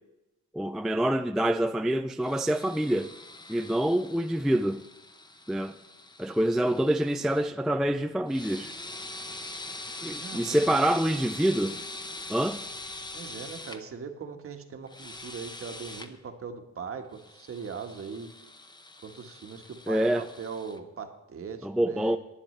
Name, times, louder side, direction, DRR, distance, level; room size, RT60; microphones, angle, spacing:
voice 1, 0.5-3.1 3.5-4.8 5.5-5.8 6.2-8.7 10.0-11.8 12.3-12.6 19.9-20.3 21.6-22.2, right 1 dB, ahead, 0.3 m, -26 dB
sound 1, 2.2-7.5 8.3-13.8 14.9-16.1 17.1-20.8, left 2 dB, 15° left, 0.9 m, -43 dB
voice 2, 10.2-11.2 13.1-18.3 19.0-22.2, right 5 dB, 45° right, 1.4 m, -40 dB
18.5 x 10.0 x 3.2 m
cardioid pair, 90°, 30 cm